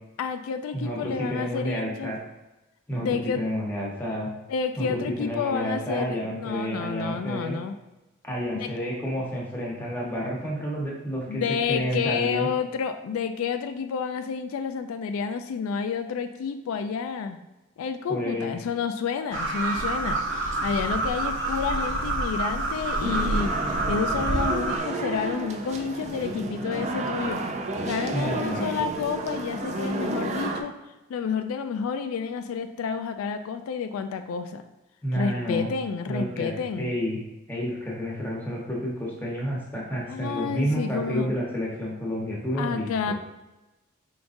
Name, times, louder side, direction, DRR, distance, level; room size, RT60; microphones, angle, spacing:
voice 1, 0.2-2.1 3.0-3.4 4.5-7.8 8.5-8.7 11.3-17.4 17.8-23.5 23.9-27.4 27.9-30.7 31.1-34.6 35.1-36.9 40.1-41.3 42.6-43.1, left 6 dB, 85° left, 9 dB, 0.3 m, -30 dB
voice 2, 0.7-2.2 2.9-4.3 4.8-7.6 8.2-12.5 18.1-18.5 28.1-28.8 35.0-35.7 36.1-37.2 37.5-43.1, equal, 10° left, -4 dB, 1.0 m, -30 dB
sound 1, 19.3-24.8, right 2 dB, 60° right, 0.7 m, -27 dB
sound 2, 23.0-30.6, right 2 dB, 35° right, 0.3 m, -31 dB
4.7 x 3.7 x 2.6 m, 1.0 s
head